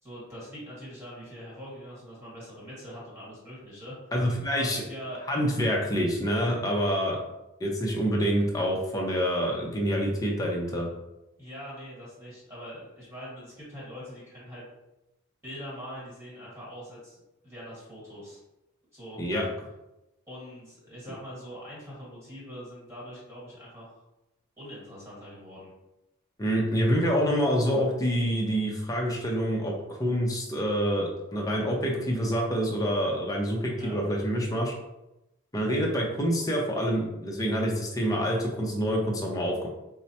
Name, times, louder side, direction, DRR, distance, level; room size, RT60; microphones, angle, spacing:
voice 1, 0.0-3.9 4.5-5.2 11.4-14.6 15.4-17.2 17.4-18.4 18.9-19.4 20.3-24.0 24.6-25.7 33.7-34.0, equal, 10° right, -8 dB, 1.4 m, -43 dB
voice 2, 4.1-4.8 5.3-7.2 7.6-10.9 19.2-19.4 26.4-34.7 35.5-39.7, equal, 15° left, -1 dB, 0.6 m, -27 dB
4.5 x 2.0 x 2.7 m, 0.93 s
head